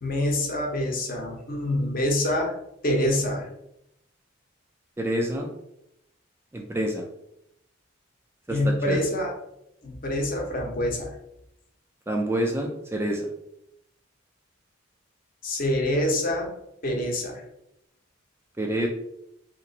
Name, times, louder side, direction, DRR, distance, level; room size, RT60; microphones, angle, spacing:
voice 1, 0.0-2.5 2.8-3.5 8.5-9.3 9.8-11.1 15.4-16.5 16.8-17.4, left 1 dB, 45° left, 0 dB, 0.8 m, -26 dB
voice 2, 5.0-5.5 6.5-7.0 8.5-9.0 12.1-13.3 18.6-18.9, right 1 dB, 10° right, 1 dB, 0.3 m, -27 dB
2.9 x 2.5 x 3.9 m, 0.80 s
head